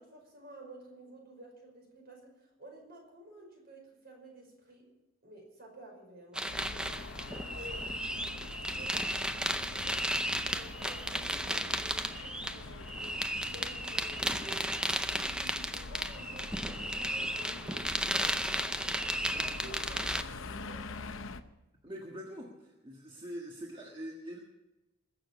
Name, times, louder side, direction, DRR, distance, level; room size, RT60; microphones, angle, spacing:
voice 1, 0.0-4.9 5.2-7.0 7.3-8.4 8.7-18.8 19.2-21.2, right 2 dB, 50° right, 1 dB, 5.3 m, -52 dB
sound 1, 6.4-20.2, right 1 dB, 5° right, 0.6 m, -34 dB
sound 2, 6.5-21.4, left 3 dB, 70° left, 0.8 m, -45 dB
voice 2, 21.8-24.4, equal, 25° right, -1 dB, 1.6 m, -43 dB
21.5 x 7.1 x 7.2 m, 0.99 s
head